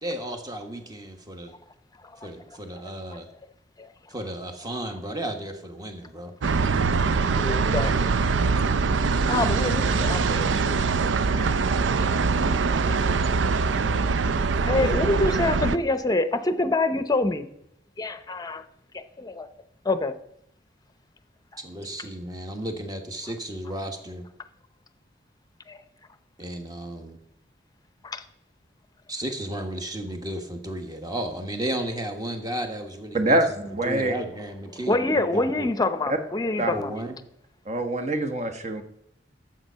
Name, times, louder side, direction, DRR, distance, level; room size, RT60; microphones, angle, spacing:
voice 1, 0.0-1.5 2.2-3.3 4.1-6.3 21.6-24.3 26.4-27.2 29.1-33.4 33.7-35.0 35.3-35.7 36.7-37.2, right 1 dB, 20° right, 5 dB, 1.4 m, -33 dB
sound 1, 6.4-15.8, right 4 dB, 90° right, 0.5 m, -23 dB
voice 2, 7.3-7.9 9.3-10.7 11.3-11.5 12.7-13.8 14.6-17.5 18.0-18.6 18.9-19.5 19.8-20.1 25.7-25.8 28.0-28.2 34.9-36.9, left 2 dB, 20° left, 11 dB, 0.7 m, -26 dB
voice 3, 33.1-34.1 36.6-36.7 37.7-38.8, right 1 dB, 40° right, 7 dB, 1.1 m, -24 dB
11.0 x 7.5 x 5.7 m, 0.75 s
head